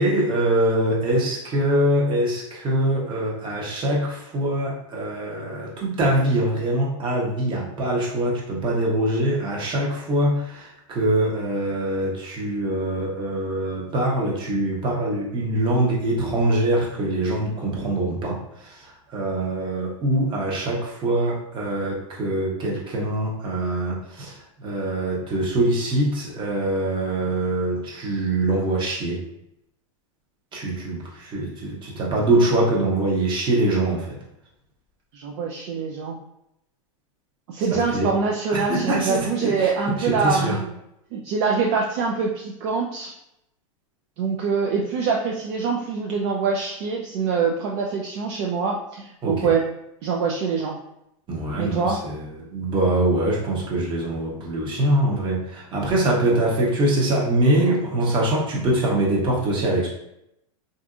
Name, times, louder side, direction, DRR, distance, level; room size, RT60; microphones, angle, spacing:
voice 1, 0.0-29.2 30.5-34.2 37.7-38.1 38.5-39.7 40.0-40.6 49.2-49.5 51.3-59.9, right 1 dB, 30° right, -3 dB, 0.9 m, -23 dB
voice 2, 35.1-36.1 37.5-40.7 41.1-43.1 44.2-49.6 50.0-50.7 51.6-52.0, right 5 dB, 50° right, 0 dB, 0.4 m, -24 dB
3.4 x 2.6 x 2.5 m, 0.82 s
hypercardioid pair, 120°, 17 cm